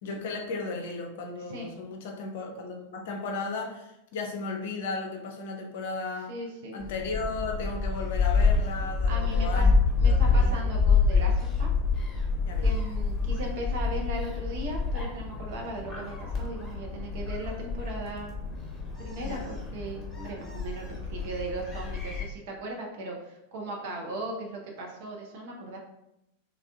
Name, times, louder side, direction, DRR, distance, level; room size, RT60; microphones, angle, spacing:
voice 1, 0.0-6.4 6.7-9.7 10.1-10.7 12.4-12.7 19.2-19.5, left 3 dB, 55° left, 2 dB, 0.6 m, -35 dB
voice 2, 6.3-6.8 9.1-9.7 10.0-11.7 12.6-18.4 19.0-25.8, right 1 dB, 50° right, 0 dB, 0.7 m, -38 dB
Gull seagull, 6.8-22.2, left 4 dB, 15° left, 1.2 m, -27 dB
3.5 x 2.3 x 3.4 m, 0.86 s
figure-of-eight pair, 90°, 0 cm